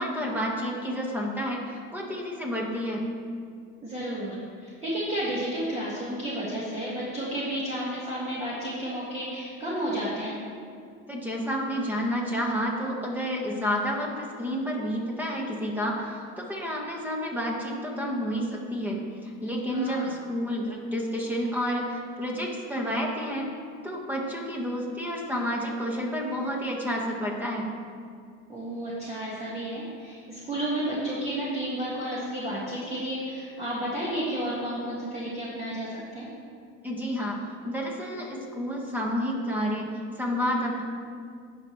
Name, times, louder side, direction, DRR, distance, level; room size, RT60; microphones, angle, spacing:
voice 1, 0.0-3.0 11.1-23.5 23.8-27.7 36.8-37.4 37.6-39.9 40.2-40.8, equal, 5° right, -2 dB, 1.5 m, -30 dB
voice 2, 3.8-10.4 19.6-20.1 28.5-36.3, right 1 dB, 20° right, -8 dB, 1.7 m, -32 dB
17.0 x 6.0 x 3.2 m, 2.2 s
cardioid pair, 145°, 30 cm